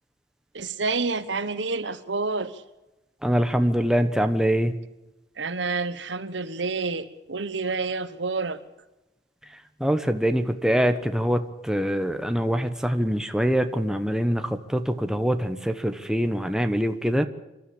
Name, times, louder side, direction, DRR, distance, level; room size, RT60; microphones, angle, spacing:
voice 1, 0.5-2.6 5.4-8.6, right 3 dB, 85° right, 1.2 m, -28 dB
voice 2, 3.2-4.7 9.8-17.3, equal, 5° right, 1.0 m, -24 dB
25.5 x 13.0 x 8.6 m
head